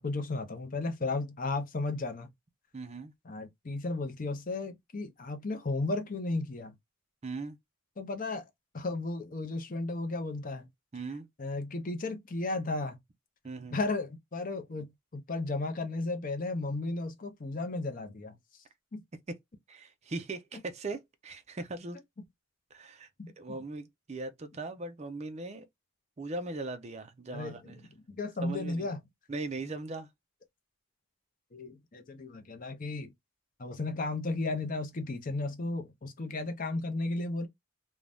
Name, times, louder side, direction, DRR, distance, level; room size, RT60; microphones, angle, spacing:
voice 1, 0.0-2.3 3.3-6.7 8.0-8.5 8.7-10.7 11.4-13.0 13.7-14.9 15.1-18.3 18.9-19.0 23.2-23.3 27.3-27.7 28.1-29.0 31.5-33.1 33.6-37.5, left 2 dB, 40° left, 0.6 m, -34 dB
voice 2, 2.7-3.1 7.2-7.6 10.9-11.3 13.4-13.8 19.3-19.4 19.7-22.0 22.7-23.1 23.4-25.6 26.2-27.8 28.4-28.9 29.3-30.1, right 3 dB, 30° right, 0.4 m, -39 dB
2.6 x 2.2 x 3.3 m
head